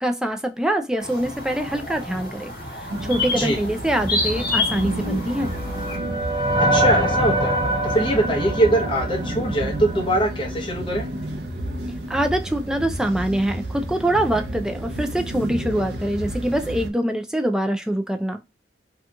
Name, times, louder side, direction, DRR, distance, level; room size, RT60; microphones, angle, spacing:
voice 1, 0.0-2.5 3.0-5.5 12.1-18.4, right 1 dB, 5° right, 0.3 m, -24 dB
sound 1, 1.0-6.0, left 3 dB, 50° left, 1.1 m, -29 dB
sound 2, 2.9-16.9, right 1 dB, 65° right, 0.6 m, -31 dB
sound 3, 4.9-10.2, right 1 dB, 25° right, 0.7 m, -24 dB
voice 2, 6.6-7.6 7.8-11.0 14.2-14.3, right 1 dB, 25° left, 0.8 m, -22 dB
2.8 x 2.3 x 2.5 m
head